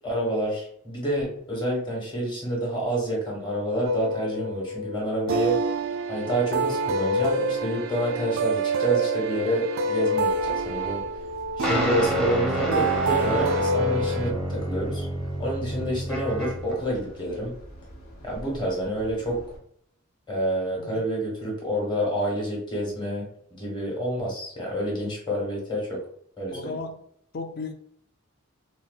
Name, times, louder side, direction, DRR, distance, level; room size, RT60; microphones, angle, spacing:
voice 1, 0.0-5.7 6.1-11.0 11.6-15.1 15.4-17.5 18.2-19.4 20.3-23.3 23.6-26.0 26.4-26.8, right 1 dB, 20° left, 1.1 m, -28 dB
sound 1, 3.8-14.3, right 2 dB, 65° right, 0.3 m, -27 dB
sound 2, 10.3-19.6, equal, 85° left, 0.9 m, -46 dB
sound 3, 11.6-16.8, right 1 dB, ahead, 0.7 m, -29 dB
voice 2, 26.5-27.0 27.3-27.7, left 3 dB, 45° left, 0.4 m, -35 dB
4.0 x 2.0 x 2.4 m
head